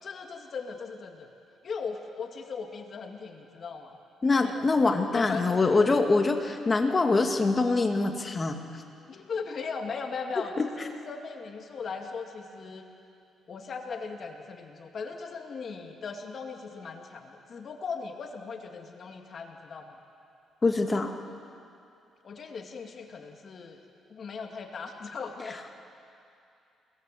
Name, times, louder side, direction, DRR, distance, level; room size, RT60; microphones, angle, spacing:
voice 1, 0.0-1.3 1.6-4.0 4.4-5.8 9.1-12.9 13.5-20.0 22.2-25.6, left 5 dB, 50° left, 3 dB, 2.5 m, -38 dB
voice 2, 4.2-8.6 10.6-10.7 20.6-21.1, left 3 dB, 30° left, 4 dB, 2.1 m, -24 dB
27.5 x 21.0 x 7.9 m, 2.6 s
cardioid pair, 90°, 0 cm